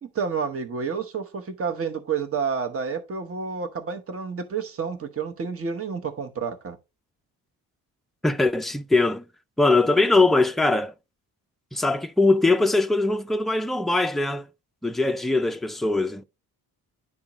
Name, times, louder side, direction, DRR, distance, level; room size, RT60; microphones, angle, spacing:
voice 1, 0.0-6.8, right 6 dB, 35° right, 1.0 m, -29 dB
voice 2, 8.2-9.2 9.6-10.9 11.7-14.5 14.8-16.2, left 2 dB, ahead, 0.3 m, -21 dB
11.0 x 3.6 x 2.9 m
cardioid pair, 125°, 38 cm